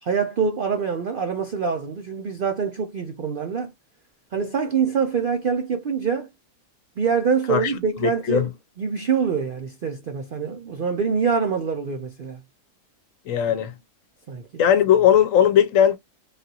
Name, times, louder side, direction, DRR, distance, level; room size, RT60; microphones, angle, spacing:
voice 1, 0.0-3.7 4.3-6.3 7.0-8.5 8.8-12.4 13.5-13.6 14.3-14.6, right 6 dB, 65° right, 0.5 m, -25 dB
voice 2, 8.0-8.5 13.3-13.7 14.6-16.0, left 9 dB, 70° left, 0.9 m, -18 dB
3.4 x 2.5 x 2.7 m
omnidirectional pair, 1.6 m